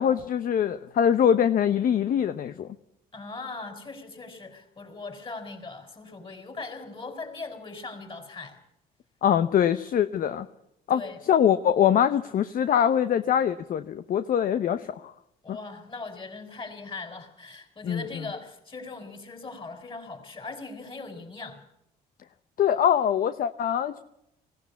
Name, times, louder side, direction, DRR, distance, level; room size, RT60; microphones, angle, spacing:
voice 1, 0.0-2.7 9.2-10.5 10.9-11.0 11.3-15.1 15.5-15.6 17.8-18.0 22.6-24.0, left 9 dB, 55° left, 11 dB, 0.8 m, -23 dB
voice 2, 3.1-8.6 10.9-11.2 15.4-21.6, left 3 dB, 30° left, 6 dB, 5.3 m, -40 dB
20.0 x 16.5 x 8.4 m, 0.82 s
cardioid pair, 100°, 18 cm